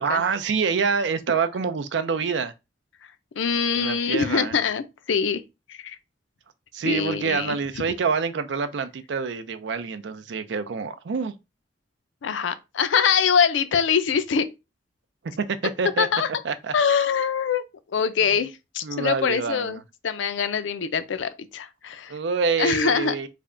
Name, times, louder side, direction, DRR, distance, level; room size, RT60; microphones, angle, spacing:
voice 1, 0.0-2.5 3.8-4.5 6.7-11.3 15.4-16.1 16.4-16.7 18.8-19.8 22.1-23.3, right 5 dB, 70° right, 0.4 m, -26 dB
voice 2, 3.4-5.4 5.7-6.0 6.9-7.6 12.2-14.5 16.0-16.3 16.7-17.6 17.9-22.1 22.6-23.1, left 6 dB, 85° left, 0.4 m, -24 dB
3.4 x 2.2 x 3.7 m
head